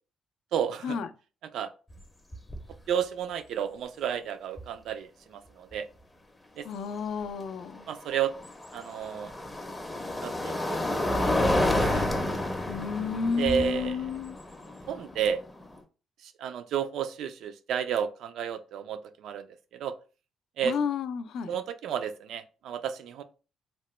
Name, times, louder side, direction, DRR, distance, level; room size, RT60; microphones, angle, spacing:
voice 1, 0.5-1.0 1.5-1.7 2.9-5.9 6.6-6.7 7.9-8.3 8.7-9.3 10.2-11.3 11.8-12.1 13.4-14.1 14.9-15.4 16.2-19.5 19.7-19.9 20.6-20.7 21.5-23.2, right 8 dB, 75° right, 0.3 m, -32 dB
sound 1, 1.9-2.0 2.3-2.7 4.6-4.7 7.7-15.8, left 1 dB, 15° left, 0.5 m, -30 dB
voice 2, 6.6-7.9 12.7-14.4 20.6-21.5, left 5 dB, 75° left, 0.3 m, -31 dB
2.9 x 2.1 x 3.0 m
cardioid pair, 90°, 0 cm